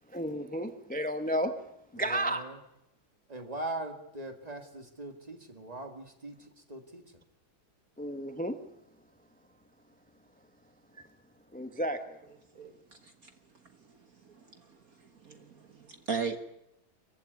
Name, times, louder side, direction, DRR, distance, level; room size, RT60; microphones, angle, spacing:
voice 1, 0.1-1.6 1.9-2.4 8.0-8.6 11.5-12.2, right 1 dB, 10° left, 8 dB, 0.5 m, -32 dB
voice 2, 1.9-2.6 3.3-7.0, right 2 dB, 20° right, 5 dB, 2.1 m, -41 dB
voice 3, 15.2-16.4, right 5 dB, 50° right, 8 dB, 1.5 m, -36 dB
24.0 x 15.5 x 9.5 m, 0.84 s
omnidirectional pair, 2.3 m